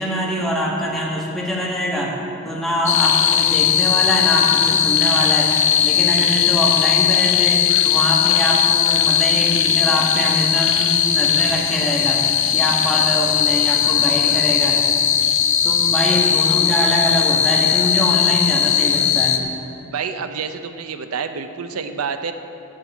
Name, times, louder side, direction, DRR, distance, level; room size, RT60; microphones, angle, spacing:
voice 1, 0.0-2.2 2.4-5.5 5.8-12.3 12.5-14.8 15.6-19.4, equal, ahead, -4 dB, 1.6 m, -23 dB
sound 1, 2.9-19.4, left 9 dB, 60° left, 0.7 m, -18 dB
voice 2, 19.9-22.3, right 6 dB, 85° right, 8 dB, 0.6 m, -28 dB
7.9 x 7.3 x 8.3 m, 2.7 s
head